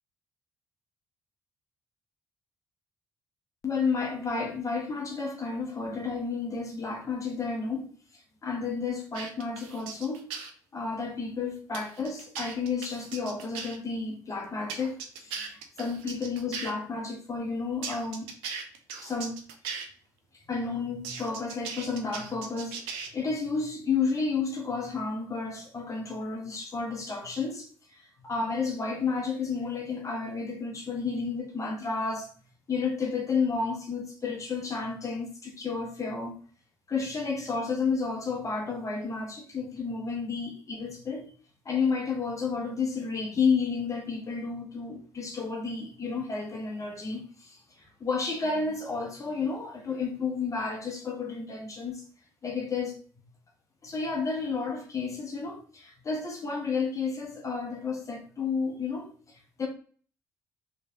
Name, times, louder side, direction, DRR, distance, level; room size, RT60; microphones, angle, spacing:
voice 1, 3.6-10.3 10.7-18.3 19.0-19.4 20.5-32.3 32.7-36.4 36.9-41.3 41.6-52.0 52.4-53.0 53.8-59.1 59.6-59.7, left 4 dB, 35° left, 1.0 m, -31 dB
sound 1, 9.1-10.5 11.7-13.8 14.7-16.7 17.8-19.9 21.0-23.1, right 6 dB, 75° right, 0.5 m, -38 dB
3.2 x 3.2 x 2.8 m
hypercardioid pair, 45°, 9 cm